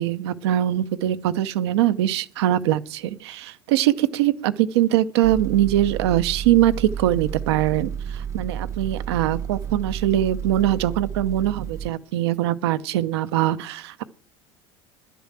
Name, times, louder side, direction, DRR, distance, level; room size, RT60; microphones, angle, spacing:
voice 1, 0.0-14.0, right 13 dB, 85° right, 0.7 m, -22 dB
sound 1, 5.2-11.9, right 8 dB, 20° right, 0.5 m, -32 dB
11.0 x 7.0 x 7.5 m
supercardioid pair, 110°, 13 cm